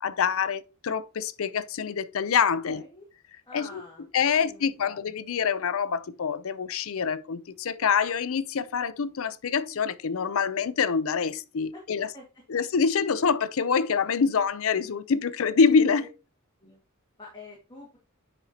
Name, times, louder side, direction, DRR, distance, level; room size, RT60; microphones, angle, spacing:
voice 1, 0.0-2.8 3.5-12.1 12.5-16.1, left 6 dB, 65° left, 0.5 m, -26 dB
voice 2, 2.6-3.1 3.5-4.0 4.3-5.0 11.7-12.2 16.0-16.1 16.6-16.8 17.2-18.0, left 2 dB, 20° left, 1.9 m, -47 dB
9.0 x 5.2 x 2.8 m
head